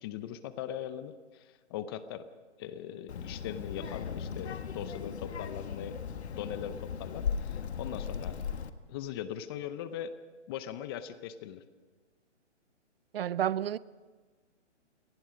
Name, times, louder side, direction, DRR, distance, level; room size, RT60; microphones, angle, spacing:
voice 1, 0.0-2.3 2.6-6.0 6.3-8.4 8.9-10.2 10.5-11.6, left 10 dB, 20° left, 0.7 m, -40 dB
Child speech kid speaking, 3.1-8.7, left 7 dB, 65° left, 1.5 m, -37 dB
voice 2, 13.1-13.8, right 10 dB, 55° right, 0.6 m, -30 dB
27.5 x 19.5 x 5.2 m
hypercardioid pair, 145°, 36 cm